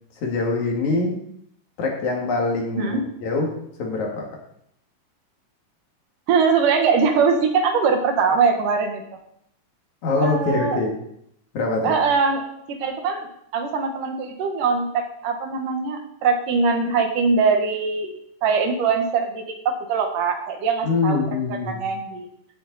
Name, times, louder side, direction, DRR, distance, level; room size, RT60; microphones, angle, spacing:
voice 1, 0.2-1.2 1.8-3.5 3.8-4.3 10.0-11.0 11.5-12.0 20.8-21.8, left 3 dB, 60° left, 0 dB, 3.3 m, -24 dB
voice 2, 6.3-9.0 10.2-10.8 11.8-12.4 12.7-13.3 13.5-18.1 18.4-21.2 21.7-22.3, right 5 dB, 70° right, 4 dB, 2.9 m, -22 dB
16.5 x 7.7 x 4.1 m, 0.73 s
omnidirectional pair, 3.9 m